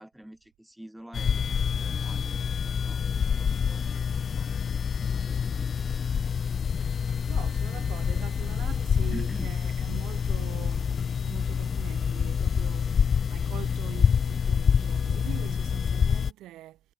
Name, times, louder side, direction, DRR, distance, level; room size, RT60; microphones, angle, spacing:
voice 1, 0.0-2.4 2.9-4.6 5.0-6.1 9.1-9.6, right 1 dB, 5° right, 5.6 m, -45 dB
sound 1, 1.1-16.3, left 7 dB, 50° left, 0.6 m, -27 dB
voice 2, 7.3-13.0 13.3-16.9, right 15 dB, 85° right, 1.9 m, -44 dB
cardioid pair, 90°, 0 cm